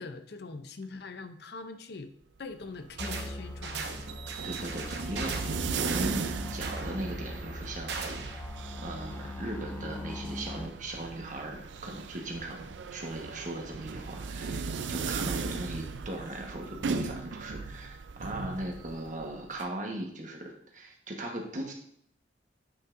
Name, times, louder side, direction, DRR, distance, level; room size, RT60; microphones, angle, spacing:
voice 1, 0.0-2.1 2.4-3.9, left 3 dB, 60° left, 8 dB, 0.6 m, -42 dB
sound 1, 2.6-19.7, right 5 dB, 85° right, 0.5 m, -38 dB
sound 2, 3.0-10.7, left 2 dB, 10° left, 0.4 m, -41 dB
sound 3, 3.0-3.3 3.6-8.4, right 5 dB, 65° right, 0.8 m, -39 dB
voice 2, 4.4-8.5 8.8-21.7, right 1 dB, 45° right, 1 dB, 1.3 m, -38 dB
9.5 x 5.4 x 2.6 m, 0.67 s
head